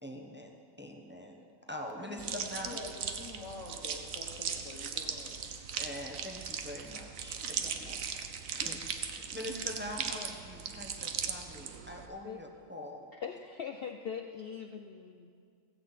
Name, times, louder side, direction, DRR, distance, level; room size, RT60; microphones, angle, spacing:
voice 1, 0.0-2.8 5.7-8.0 8.5-8.8 9.3-13.1, left 1 dB, 10° right, 2 dB, 0.9 m, -44 dB
voice 2, 2.0-5.5 7.6-8.0, left 3 dB, 75° left, -2 dB, 1.5 m, -47 dB
sound 1, 2.2-12.1, right 7 dB, 85° right, 1.2 m, -38 dB
voice 3, 13.1-15.3, left 7 dB, 60° left, 5 dB, 0.7 m, -41 dB
16.0 x 15.5 x 4.1 m, 2.3 s
omnidirectional pair, 1.4 m